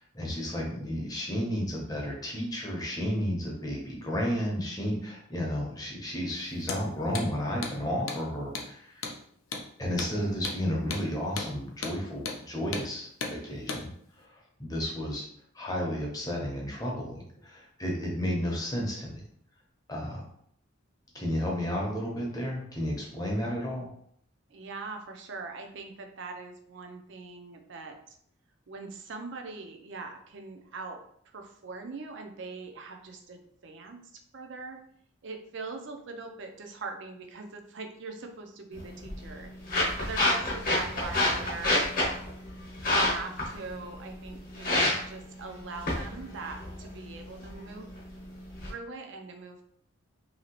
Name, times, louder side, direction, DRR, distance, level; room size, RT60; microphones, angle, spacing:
voice 1, 0.1-9.1 9.8-13.9 14.2-14.3 14.6-15.2 15.5-19.2 19.9-20.2 21.1-23.9, equal, 20° left, -2 dB, 0.7 m, -32 dB
Hammer, 6.6-6.8 7.1-7.3 7.6-7.8 8.1-8.2 8.5-8.7 9.0-9.2 9.5-9.7 10.0-10.1 10.4-10.6 10.9-11.0 11.4-11.5 11.8-12.0 12.3-12.4 12.7-12.9 13.2-13.4 13.7-13.8, left 4 dB, 85° left, 0.6 m, -34 dB
voice 2, 24.5-28.2 28.7-31.0 31.3-34.0 34.3-34.8 35.2-39.5 40.0-41.8 42.8-47.9 48.7-49.6, right 3 dB, 60° right, 4 dB, 0.5 m, -41 dB
sound 1, 38.7-48.7, left 1 dB, 45° left, 0.9 m, -30 dB
2.9 x 2.8 x 2.9 m, 0.66 s
head